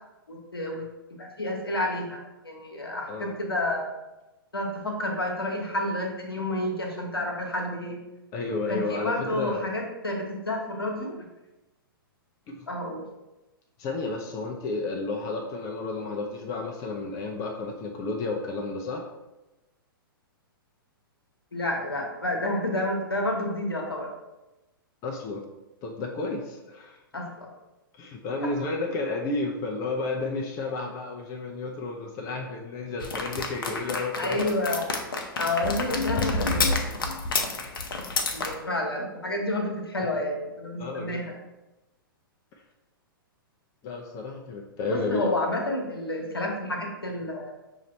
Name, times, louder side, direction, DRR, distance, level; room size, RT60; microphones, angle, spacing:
voice 1, 0.3-0.8 1.2-3.9 4.5-8.0 8.7-11.1 12.7-13.0 21.5-24.1 27.1-27.5 28.6-28.7 34.2-34.9 35.4-36.7 38.3-41.4 44.9-47.5, left 1 dB, 85° left, 1 dB, 1.0 m, -30 dB
voice 2, 8.3-9.7 12.5-12.7 13.8-19.1 25.0-25.4 25.8-27.0 28.0-34.4 40.8-41.2 43.8-45.4, left 3 dB, 30° left, 1 dB, 0.5 m, -32 dB
sound 1, 33.0-38.5, left 3 dB, 70° left, 0.6 m, -28 dB
5.7 x 2.6 x 3.1 m, 1.0 s
figure-of-eight pair, 110°, 12 cm